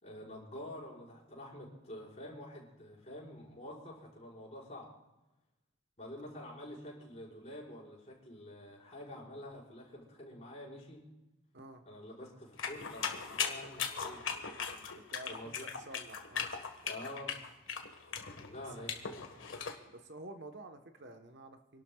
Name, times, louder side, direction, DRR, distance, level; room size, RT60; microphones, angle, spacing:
voice 1, 0.0-4.9 6.0-11.0 11.9-14.2 15.3-15.7 16.8-17.4 18.3-19.1, left 1 dB, 35° left, -5 dB, 5.5 m, -47 dB
sound 1, 12.6-19.8, left 6 dB, 75° left, 1.6 m, -38 dB
voice 2, 14.8-16.5 19.9-21.8, right 1 dB, 60° right, 6 dB, 1.3 m, -50 dB
28.5 x 12.0 x 2.4 m, 1.1 s
head